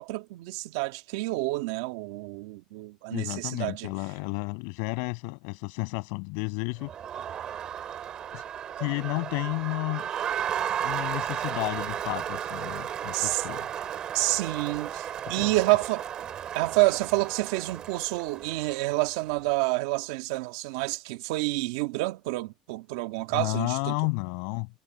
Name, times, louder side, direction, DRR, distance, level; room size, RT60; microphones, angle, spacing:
voice 1, 0.0-3.9 13.1-13.4 14.1-16.0 16.5-23.9, right 22 dB, 85° right, 1.7 m, -28 dB
voice 2, 3.1-6.9 8.3-8.4 8.8-10.1 10.8-13.7 15.4-15.5 23.3-24.7, left 39 dB, 80° left, 7.4 m, -32 dB
Crowd, 6.8-19.3, right 9 dB, 40° right, 3.5 m, -34 dB
supercardioid pair, 120°, 2 cm